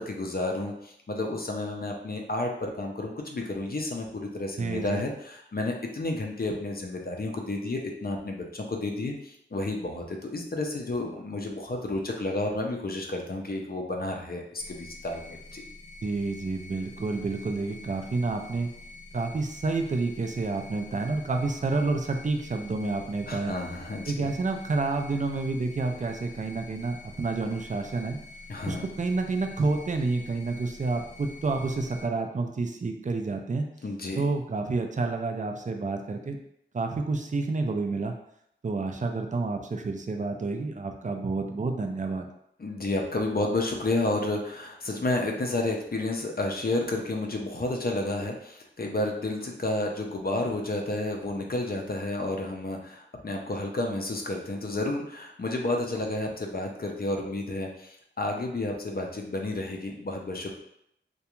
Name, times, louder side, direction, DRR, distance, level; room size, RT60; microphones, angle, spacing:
voice 1, 0.0-15.6 23.3-24.3 28.5-28.9 33.8-34.2 42.6-60.6, left 2 dB, 50° left, 1 dB, 0.5 m, -31 dB
voice 2, 4.6-5.0 16.0-18.7 19.1-23.5 24.1-28.2 28.7-33.7 34.2-36.4 36.7-38.2 38.6-42.3, right 3 dB, 40° right, 4 dB, 0.4 m, -29 dB
sound 1, 14.6-32.0, left 2 dB, 75° right, 0.9 m, -47 dB
2.4 x 2.2 x 2.9 m, 0.75 s
wide cardioid pair, 45°, 20 cm